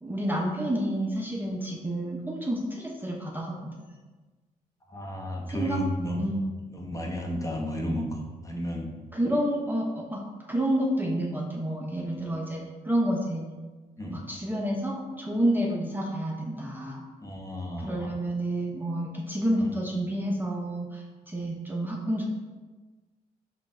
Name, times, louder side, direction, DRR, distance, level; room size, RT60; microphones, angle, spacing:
voice 1, 0.0-3.5 5.5-5.8 6.2-6.4 9.1-10.2 10.5-13.4 14.1-17.0 17.8-22.2, right 1 dB, 10° right, -1 dB, 0.7 m, -29 dB
voice 2, 4.9-6.2 6.7-8.2 8.4-8.9 14.0-14.2 17.2-18.1 19.6-19.7, equal, 20° left, 0 dB, 0.9 m, -32 dB
5.0 x 2.4 x 4.3 m, 1.3 s
cardioid pair, 65°, 16 cm